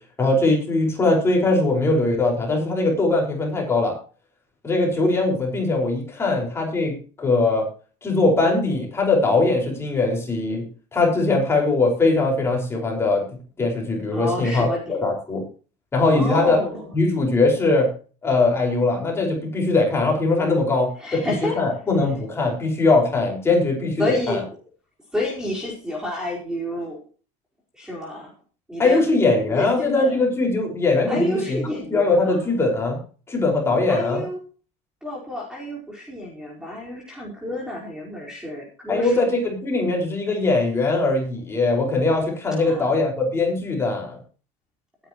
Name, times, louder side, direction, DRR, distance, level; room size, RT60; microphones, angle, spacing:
voice 1, 0.2-4.0 4.6-7.7 8.0-13.2 13.6-15.4 15.9-16.6 16.9-17.9 18.2-24.4 28.8-31.6 31.9-33.0 33.3-34.2 38.9-44.2, left 2 dB, 15° left, 0 dB, 5.4 m, -21 dB
voice 2, 14.1-15.1 16.0-16.9 20.9-22.2 24.0-24.6 25.1-27.0 27.7-28.3 28.7-30.2 31.0-32.5 33.9-34.4 35.0-39.4 42.5-43.0, left 1 dB, 5° right, -3 dB, 4.8 m, -30 dB
20.0 x 10.5 x 3.1 m, 0.38 s
cardioid pair, 155°, 15 cm